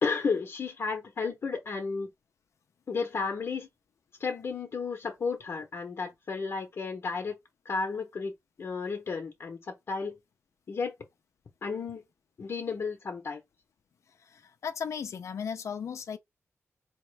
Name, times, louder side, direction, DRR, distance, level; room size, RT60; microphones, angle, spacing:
voice 1, 0.0-2.1 2.9-3.7 4.2-7.4 7.6-10.2 10.7-10.9 11.6-12.0 12.4-13.4, left 4 dB, 55° left, 0.9 m, -33 dB
voice 2, 14.2-16.2, left 7 dB, 80° left, 0.6 m, -36 dB
4.3 x 3.0 x 3.2 m
wide cardioid pair, 140°, 5 cm